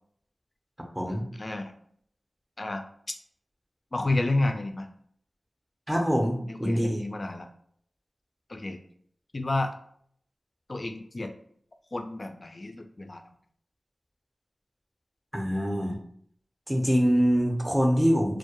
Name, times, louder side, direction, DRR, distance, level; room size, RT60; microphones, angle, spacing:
voice 1, 1.4-1.7 2.6-2.8 3.9-4.9 6.4-7.5 8.5-8.8 9.3-9.7 10.7-11.3 11.9-13.3, left 2 dB, 45° left, 6 dB, 0.3 m, -30 dB
voice 2, 5.9-7.0 15.3-16.0 16.7-18.4, equal, 10° right, 0 dB, 0.6 m, -24 dB
2.2 x 2.1 x 2.9 m, 0.63 s
wide cardioid pair, 70°, 0 cm